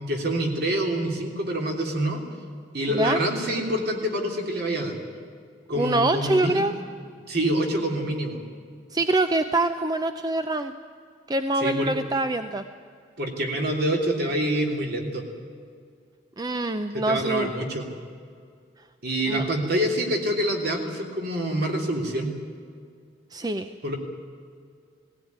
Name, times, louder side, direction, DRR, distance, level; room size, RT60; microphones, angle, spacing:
voice 1, 0.0-2.2 2.7-5.0 5.7-6.6 7.3-8.4 11.6-11.9 13.2-15.2 16.9-17.8 19.0-22.3 23.8-24.0, right 1 dB, 55° right, 2 dB, 3.2 m, -26 dB
voice 2, 5.7-6.7 8.9-10.7 11.3-12.6 16.4-17.5 19.3-19.5 23.3-23.7, right 2 dB, 20° right, 8 dB, 0.6 m, -24 dB
19.0 x 16.5 x 9.6 m, 2.2 s
head